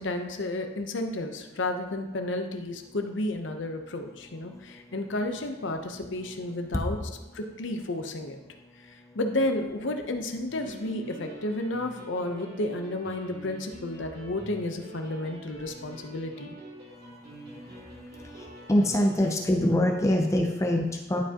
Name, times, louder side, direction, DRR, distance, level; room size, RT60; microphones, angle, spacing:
voice 1, 0.0-7.0 7.3-8.4 8.8-16.5, left 1 dB, 65° left, 5 dB, 0.8 m, -32 dB
sound 1, 10.5-19.3, right 1 dB, 55° right, 2.2 m, -46 dB
voice 2, 17.5-17.8 18.4-21.2, left 1 dB, 15° left, 1 dB, 0.5 m, -25 dB
11.0 x 4.9 x 2.9 m, 1.1 s
head